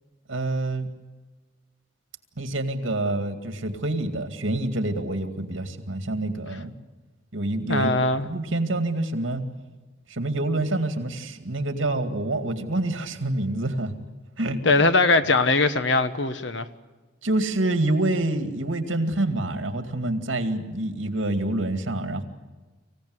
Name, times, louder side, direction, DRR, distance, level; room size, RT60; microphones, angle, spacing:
voice 1, 0.3-0.9 2.4-6.7 7.3-7.9 8.2-9.4 10.1-13.9 14.4-14.6 17.2-22.2, right 2 dB, 80° right, 2.2 m, -27 dB
voice 2, 7.7-8.3 14.6-16.7, left 3 dB, 70° left, 1.2 m, -21 dB
25.5 x 16.0 x 9.6 m
head